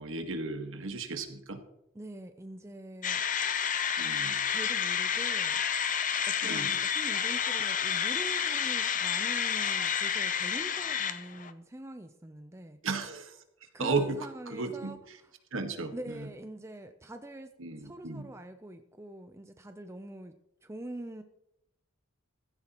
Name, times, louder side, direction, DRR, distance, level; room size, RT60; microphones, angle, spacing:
voice 1, 0.0-1.6 4.0-4.4 6.4-6.7 12.8-13.4 13.8-14.2 14.5-15.0 15.5-16.2 17.6-18.3, right 3 dB, 70° right, 6 dB, 1.6 m, -34 dB
voice 2, 1.9-3.2 4.5-5.6 6.2-12.8 13.7-15.3 15.9-17.5 17.8-20.3 20.6-21.2, right 1 dB, 15° right, 7 dB, 0.5 m, -44 dB
sound 1, 3.0-11.5, left 8 dB, 40° left, 0.7 m, -30 dB
15.5 x 14.0 x 3.0 m, 0.83 s
head